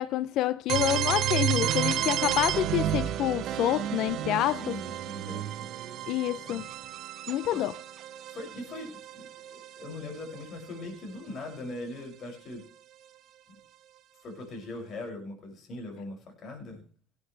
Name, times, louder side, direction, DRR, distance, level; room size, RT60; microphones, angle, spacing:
voice 1, 0.0-4.8 6.1-6.7 7.3-7.7, left 13 dB, 60° left, 0.5 m, -28 dB
sound 1, 0.7-10.4, right 11 dB, 55° right, 1.1 m, -31 dB
voice 2, 4.6-5.7 6.4-6.6 7.5-7.7 8.3-12.6 14.2-16.8, left 2 dB, 45° left, 6.5 m, -41 dB
19.0 x 9.5 x 3.3 m
supercardioid pair, 95°, 0 cm